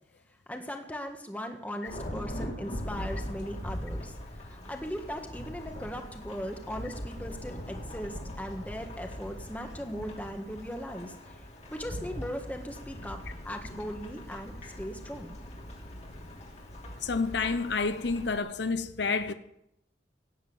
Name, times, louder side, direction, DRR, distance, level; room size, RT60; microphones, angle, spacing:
voice 1, 0.5-11.4 11.7-15.4, equal, 10° left, 1.6 m, -39 dB
Thunderstorm / Rain, 1.8-18.4, equal, 35° left, 3.3 m, -41 dB
voice 2, 17.0-19.3, left 4 dB, 65° left, 0.8 m, -29 dB
17.0 x 10.0 x 7.2 m
head